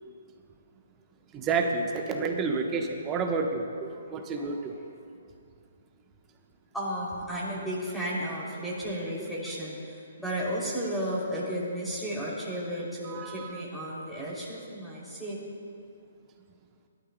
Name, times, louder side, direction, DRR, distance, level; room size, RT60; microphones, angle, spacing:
voice 1, 1.3-4.7 13.0-13.6, right 4 dB, 20° right, 3 dB, 1.0 m, -30 dB
voice 2, 4.1-4.5 6.7-15.4, equal, ahead, -7 dB, 2.9 m, -33 dB
18.0 x 12.0 x 2.2 m, 2.4 s
figure-of-eight pair, 135°, 0 cm